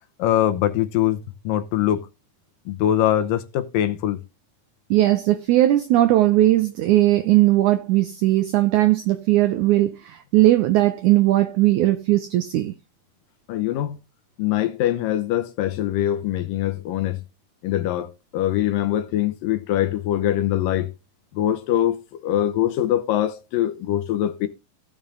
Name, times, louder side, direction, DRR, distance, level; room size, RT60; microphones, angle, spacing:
voice 1, 0.2-2.1 2.7-4.2 13.5-14.0 14.4-17.2 17.6-20.9 21.4-24.5, left 12 dB, 75° left, 2.4 m, -23 dB
voice 2, 4.9-12.7, right 15 dB, 85° right, 1.7 m, -18 dB
16.0 x 5.5 x 3.8 m
omnidirectional pair, 4.3 m